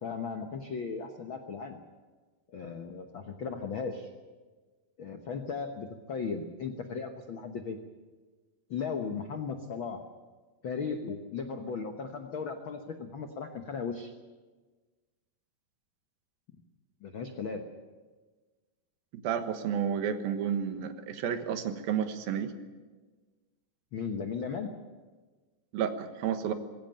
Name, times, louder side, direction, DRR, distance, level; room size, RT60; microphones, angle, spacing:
voice 1, 0.0-1.8 2.5-4.1 5.0-7.8 8.7-10.0 10.6-14.1 17.0-17.7 23.9-24.7, left 5 dB, 75° left, 6 dB, 1.1 m, -36 dB
voice 2, 19.2-22.5 25.7-26.5, right 8 dB, 80° right, 8 dB, 3.1 m, -31 dB
21.0 x 16.5 x 8.9 m, 1.3 s
omnidirectional pair, 4.1 m